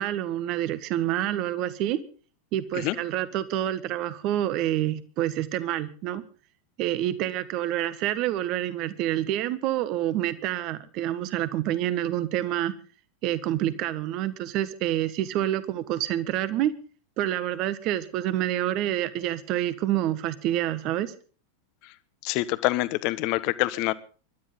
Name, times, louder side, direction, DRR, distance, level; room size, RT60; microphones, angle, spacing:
voice 1, 0.0-2.0 2.5-6.2 6.8-12.7 13.2-16.7 17.2-21.1, right 13 dB, 40° right, 14 dB, 1.5 m, -27 dB
voice 2, 22.2-23.9, left 19 dB, 45° left, 15 dB, 1.2 m, -26 dB
25.0 x 12.5 x 3.8 m, 0.40 s
figure-of-eight pair, 90°, 0 cm